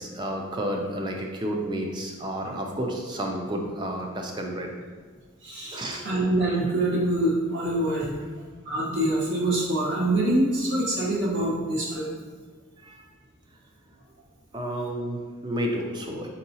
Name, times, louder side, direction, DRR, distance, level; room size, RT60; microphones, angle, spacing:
voice 1, 0.0-4.7 5.7-6.1 12.8-13.1 14.5-16.3, right 1 dB, 20° right, 2 dB, 0.4 m, -31 dB
voice 2, 5.4-8.1 8.6-12.1, right 1 dB, 55° right, -5 dB, 0.9 m, -25 dB
5.4 x 2.8 x 2.7 m, 1.5 s
head